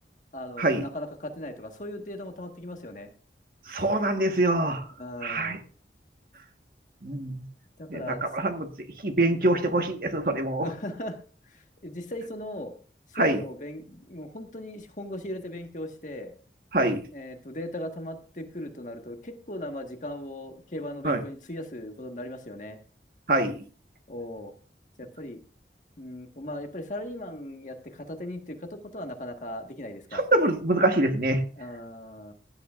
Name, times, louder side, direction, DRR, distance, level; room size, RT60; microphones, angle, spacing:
voice 1, 0.3-3.1 5.0-5.6 7.8-8.3 10.6-11.2 11.5-12.7 13.1-16.3 17.1-22.8 24.1-24.5 25.0-25.4 26.0-30.2 31.6-32.3, left 1 dB, 45° left, 4 dB, 1.5 m, -38 dB
voice 2, 3.7-4.9 5.2-5.6 7.0-7.4 7.9-10.7 13.1-13.4 16.7-17.0 21.0-21.2 23.3-23.6 30.1-31.4, right 2 dB, 55° right, 6 dB, 1.4 m, -25 dB
16.0 x 10.5 x 2.5 m, 0.39 s
head